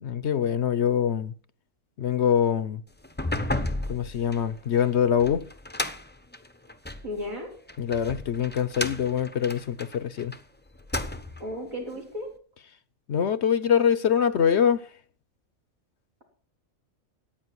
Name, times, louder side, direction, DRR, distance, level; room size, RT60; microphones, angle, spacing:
voice 1, 0.0-1.3 2.0-2.8 3.9-5.4 7.8-10.3 13.1-14.8, left 8 dB, 60° left, 1.0 m, -24 dB
sound 1, 3.0-7.1 7.7-10.4 10.7-11.5, left 1 dB, 10° left, 0.6 m, -33 dB
voice 2, 7.0-7.5 11.4-12.3, left 1 dB, 80° right, 4.3 m, -34 dB
14.5 x 9.0 x 4.6 m
omnidirectional pair, 1.4 m